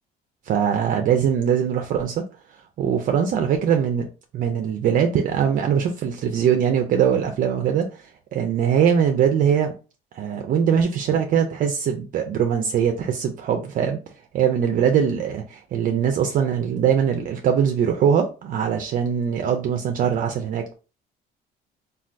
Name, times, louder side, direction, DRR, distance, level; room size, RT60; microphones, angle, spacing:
voice 1, 0.5-2.2 2.8-4.1 4.3-9.7 10.1-14.0 14.3-20.8, right 8 dB, 55° right, 0.4 m, -22 dB
3.3 x 2.3 x 2.4 m
cardioid pair, 110°, 17 cm